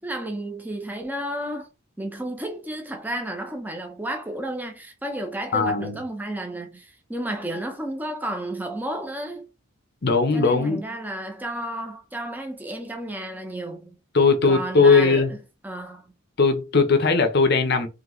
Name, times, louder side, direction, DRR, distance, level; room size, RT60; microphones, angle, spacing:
voice 1, 0.0-1.7 2.0-9.5 10.3-14.0 14.5-15.4 15.6-16.0, right 1 dB, 10° right, 0.7 m, -32 dB
voice 2, 5.5-6.0 10.0-10.8 14.1-15.3 16.4-17.9, left 4 dB, 50° left, 0.7 m, -19 dB
3.9 x 3.3 x 3.1 m
head